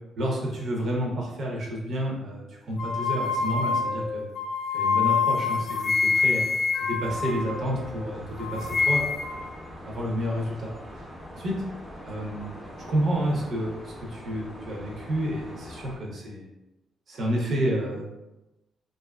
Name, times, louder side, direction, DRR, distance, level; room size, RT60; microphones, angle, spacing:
voice 1, 0.2-4.3 4.7-6.4 6.8-9.4 9.8-10.7 11.3-11.6 12.0-12.5 12.8-16.5 17.1-18.1, equal, 60° right, -2 dB, 0.6 m, -30 dB
sound 1, 2.8-8.1 8.4-9.5, left 5 dB, 50° left, 0.3 m, -26 dB
sound 2, 7.0-16.0, equal, ahead, 0.6 m, -42 dB
2.5 x 2.4 x 2.3 m, 0.98 s
cardioid pair, 110°, 0 cm